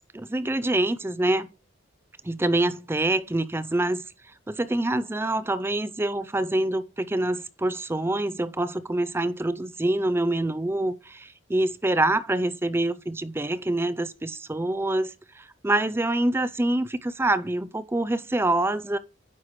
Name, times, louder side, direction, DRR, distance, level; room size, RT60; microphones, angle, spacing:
voice 1, 0.1-1.5 2.2-4.0 4.5-19.0, right 1 dB, 10° right, 0.4 m, -26 dB
9.7 x 5.7 x 3.1 m
head